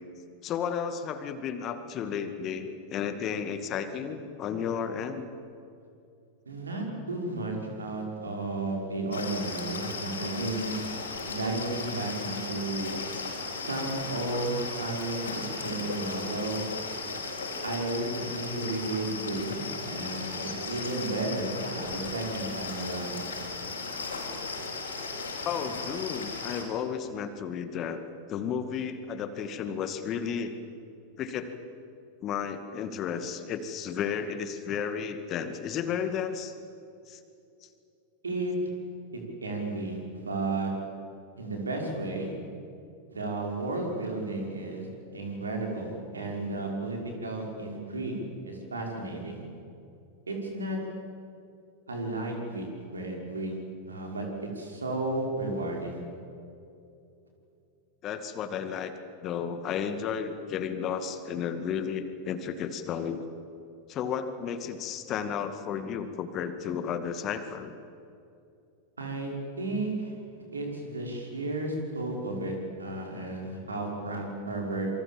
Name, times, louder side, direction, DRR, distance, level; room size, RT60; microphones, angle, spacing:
voice 1, 0.4-5.3 25.4-28.0 28.3-30.5 31.2-31.5 32.2-36.5 37.1-37.2 58.0-58.9 59.2-63.2 63.9-67.7, left 7 dB, 35° left, 9 dB, 2.1 m, -33 dB
voice 2, 6.5-10.9 11.2-13.0 13.7-16.7 17.6-23.2 38.2-38.7 39.1-40.7 41.4-42.3 43.1-44.9 45.1-48.2 48.4-49.4 50.3-50.8 51.9-53.6 53.9-56.0 69.0-69.3 69.6-70.1 70.5-74.9, right 2 dB, 75° right, 1 dB, 5.7 m, -33 dB
sound 1, 9.1-26.6, left 3 dB, 70° left, 5.6 m, -36 dB
27.5 x 24.5 x 7.4 m, 2.7 s
figure-of-eight pair, 90°, 0 cm